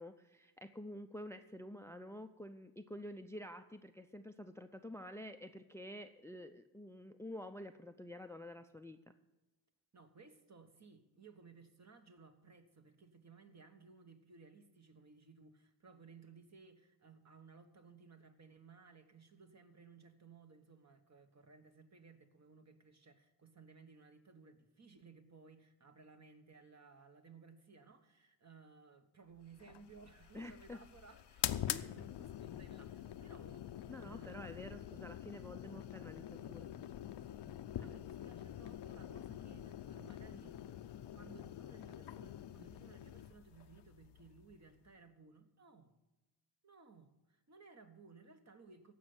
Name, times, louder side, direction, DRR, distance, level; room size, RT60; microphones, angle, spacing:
voice 1, 0.0-9.2 30.3-30.8 31.7-31.9 33.9-36.7 37.8-38.0, left 1 dB, 5° left, 9 dB, 0.5 m, -49 dB
voice 2, 9.9-34.6 37.2-37.5 37.7-40.6 41.1-45.9 46.6-48.9, right 4 dB, 40° right, 7 dB, 1.3 m, -60 dB
sound 1, 29.6-44.9, left 11 dB, 70° left, 0.6 m, -45 dB
15.0 x 5.6 x 7.9 m, 1.1 s
cardioid pair, 65°, 44 cm